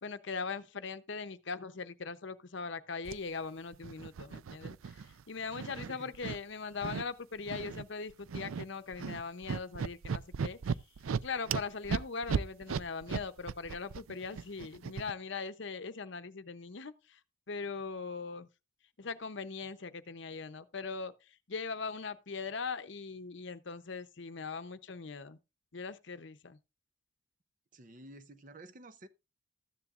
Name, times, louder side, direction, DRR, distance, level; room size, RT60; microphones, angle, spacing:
voice 1, 0.0-4.9 5.3-10.8 11.2-17.2 17.5-18.5 19.0-21.1 21.5-25.4 25.7-26.6, left 4 dB, 60° left, 0.7 m, -40 dB
sound 1, 3.0-3.2 3.7-5.2 5.5-6.4 6.8-7.0 7.5-7.8 8.1-8.7 8.9-15.1, right 6 dB, 85° right, 0.4 m, -36 dB
voice 2, 5.7-6.1 27.7-29.1, right 2 dB, 40° right, 0.7 m, -52 dB
13.5 x 10.0 x 2.5 m
head